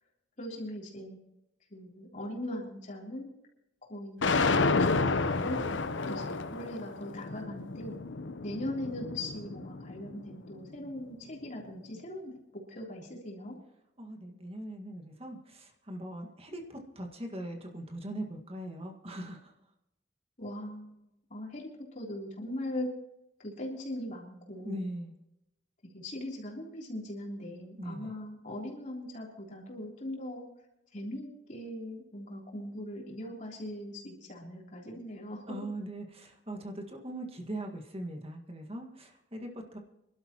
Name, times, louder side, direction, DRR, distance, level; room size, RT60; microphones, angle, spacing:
voice 1, 0.4-1.2 1.7-3.3 3.8-5.7 6.1-7.9 8.4-13.6 20.4-20.9 21.3-22.9 23.4-24.9 25.8-30.4 30.9-35.6, left 1 dB, 40° left, -2 dB, 3.4 m, -40 dB
sound 1, 4.2-10.4, left 3 dB, 75° left, 0.8 m, -31 dB
voice 2, 14.0-19.5 24.6-25.1 27.8-28.1 35.5-39.8, right 1 dB, 30° right, 2 dB, 1.8 m, -40 dB
26.0 x 12.0 x 3.0 m, 0.87 s
head